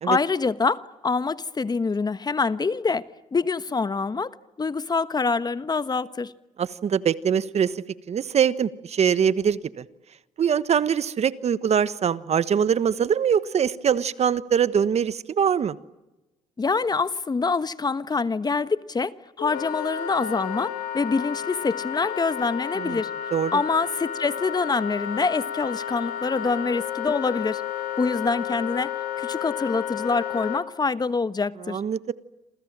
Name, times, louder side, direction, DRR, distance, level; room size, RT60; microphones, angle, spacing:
voice 1, 0.0-3.0 3.3-6.3 16.6-23.1 23.5-27.6 28.0-31.8, left 4 dB, 30° left, 1.3 m, -25 dB
voice 2, 6.6-9.8 10.4-15.7 22.8-23.0 23.3-23.6 31.7-32.1, right 8 dB, 50° right, 1.3 m, -23 dB
Wind instrument woodwind instrument, 19.4-30.6, left 9 dB, 75° left, 2.9 m, -32 dB
28.0 x 28.0 x 7.5 m
supercardioid pair, 70°, 14 cm